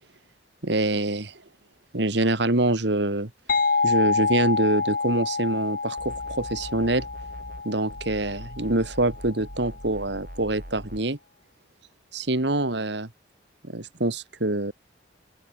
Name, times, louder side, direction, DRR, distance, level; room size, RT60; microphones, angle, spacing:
voice 1, 0.6-1.3 1.9-3.3 3.8-7.1 7.6-11.2 12.1-13.1 13.7-14.7, right 2 dB, 70° right, 2.0 m, -25 dB
sound 1, 3.5-9.0, left 4 dB, 50° left, 1.0 m, -27 dB
sound 2, 6.0-7.6 7.9-11.0, equal, 45° right, 6.8 m, -42 dB
open air
head